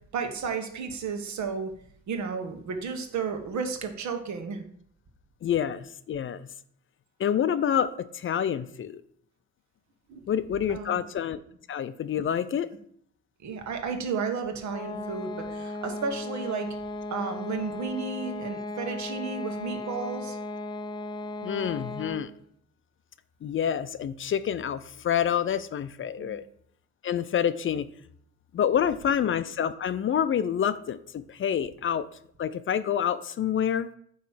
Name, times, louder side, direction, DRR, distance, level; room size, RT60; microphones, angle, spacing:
voice 1, 0.1-1.7 2.1-4.6 10.1-10.2 10.7-11.1 13.4-16.8 17.1-20.4 26.2-26.4, right 5 dB, 65° right, 6 dB, 1.3 m, -33 dB
voice 2, 5.4-6.5 7.2-9.0 10.3-11.4 11.7-12.7 21.4-22.3 23.4-26.4 27.0-27.9 28.5-32.1 32.4-33.9, left 9 dB, 45° left, 14 dB, 0.5 m, -27 dB
sound 1, 14.7-22.4, left 2 dB, 15° left, 0.8 m, -36 dB
8.9 x 3.1 x 5.7 m, 0.65 s
cardioid pair, 90°, 30 cm